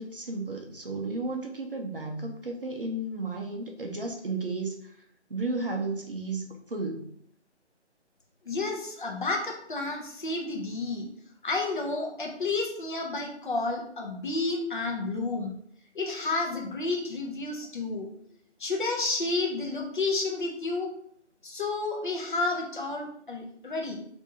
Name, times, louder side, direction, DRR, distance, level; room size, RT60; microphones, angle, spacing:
voice 1, 0.0-7.1, right 2 dB, 50° right, 1 dB, 0.5 m, -33 dB
voice 2, 8.4-11.1 11.4-15.5 15.9-18.1 18.6-20.9 21.4-23.9, left 3 dB, 45° left, 0 dB, 0.7 m, -31 dB
3.3 x 2.6 x 2.8 m, 0.67 s
figure-of-eight pair, 165°, 35 cm